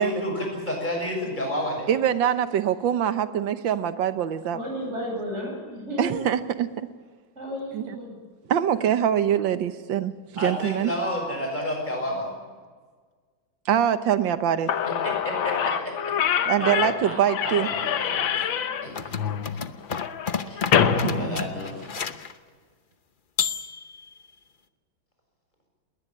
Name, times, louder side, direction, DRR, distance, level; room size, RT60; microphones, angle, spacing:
voice 1, 0.0-1.9 10.4-12.3 14.9-16.1 16.6-18.5 18.8-18.9 19.7-19.8 20.5-20.6 21.1-21.8, equal, 20° left, 2 dB, 6.9 m, -31 dB
voice 2, 1.9-4.6 6.0-6.9 7.7-7.9 8.5-10.9 13.7-14.7 16.5-17.7 21.0-21.4, right 9 dB, 75° right, 11 dB, 1.7 m, -24 dB
voice 3, 4.5-6.2 7.3-8.2 12.0-12.2, equal, 35° right, 0 dB, 8.6 m, -33 dB
Slam / Squeak, 14.4-14.5 14.7-22.2, left 8 dB, 80° left, 1.9 m, -26 dB
sound 1, 18.9-22.3 23.4-24.2, left 7 dB, 45° left, 0.6 m, -31 dB
21.0 x 19.5 x 8.7 m, 1.5 s
omnidirectional pair, 2.1 m